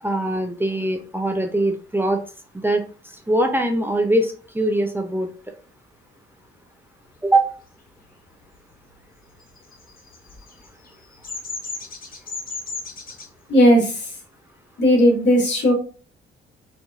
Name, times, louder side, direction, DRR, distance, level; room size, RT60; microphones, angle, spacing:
voice 1, 0.0-2.2 2.5-5.3 7.2-7.5, right 1 dB, 10° right, 4 dB, 0.5 m, -22 dB
Bird vocalization bird call bird song, 9.6-13.3, left 4 dB, 45° left, 1.0 m, -34 dB
voice 2, 13.5-14.1 14.8-15.7, equal, 65° left, 0 dB, 1.8 m, -16 dB
4.6 x 2.6 x 2.4 m, 0.38 s
cardioid pair, 90°, 20 cm